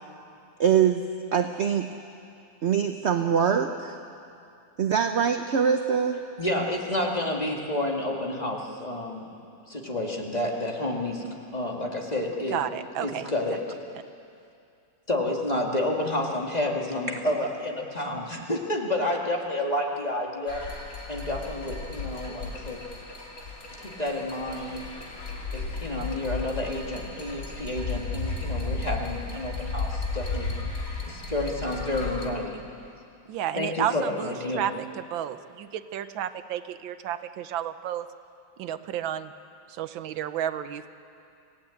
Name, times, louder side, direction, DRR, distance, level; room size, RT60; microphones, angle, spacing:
voice 1, 0.6-1.9 2.6-4.0 4.8-6.2 17.1-17.2, right 7 dB, 55° right, 6 dB, 0.8 m, -24 dB
voice 2, 6.4-9.3 9.7-11.2 11.5-12.6 13.0-13.8 15.1-20.6 21.1-22.8 23.8-24.8 25.5-30.5 31.1-32.6 33.6-34.7, left 1 dB, 20° left, -1 dB, 2.4 m, -30 dB
voice 3, 12.5-13.3 33.3-38.1 38.6-39.3 39.7-40.9, right 10 dB, 90° right, 11 dB, 1.6 m, -32 dB
sound 1, 20.5-32.3, left 3 dB, 45° left, 2.9 m, -34 dB
27.0 x 17.0 x 8.6 m, 2.5 s
omnidirectional pair, 2.1 m